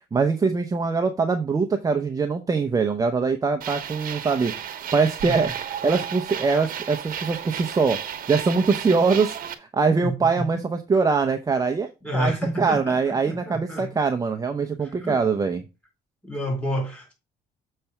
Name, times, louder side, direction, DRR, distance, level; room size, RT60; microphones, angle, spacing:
voice 1, 0.1-5.5 5.8-8.0 8.3-11.9 12.1-15.6, right 4 dB, 20° right, 0.7 m, -23 dB
sound 1, 3.6-9.5, right 9 dB, 55° right, 1.0 m, -33 dB
voice 2, 10.0-10.5 12.0-13.9 14.8-15.2 16.2-17.1, equal, 10° left, 4.1 m, -29 dB
6.7 x 3.3 x 5.8 m
cardioid pair, 110°, 17 cm